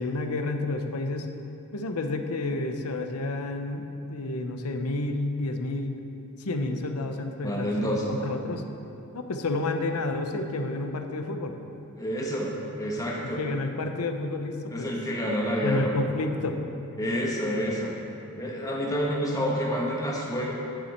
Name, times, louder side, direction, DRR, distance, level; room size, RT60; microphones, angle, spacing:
voice 1, 0.0-1.3 1.7-5.9 6.4-8.6 9.1-11.6 13.2-14.9 15.6-16.6, left 2 dB, 85° left, 6 dB, 0.8 m, -30 dB
voice 2, 7.4-8.0 12.0-13.4 14.7-15.9 17.0-17.9 18.4-20.5, equal, 15° left, -3 dB, 1.5 m, -28 dB
11.5 x 7.4 x 4.4 m, 2.9 s
head